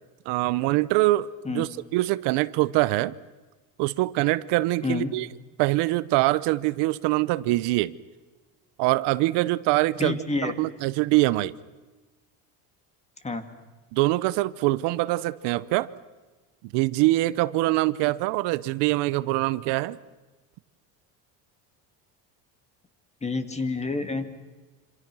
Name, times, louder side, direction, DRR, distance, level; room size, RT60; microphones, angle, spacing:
voice 1, 0.3-3.1 3.8-5.3 5.6-8.0 8.8-10.2 10.4-11.5 13.9-15.9 16.7-20.0, right 18 dB, 75° right, 0.9 m, -24 dB
voice 2, 10.0-10.5 13.2-13.4 23.2-24.3, left 3 dB, 15° left, 2.1 m, -28 dB
27.0 x 27.0 x 6.2 m
cardioid pair, 140°, 42 cm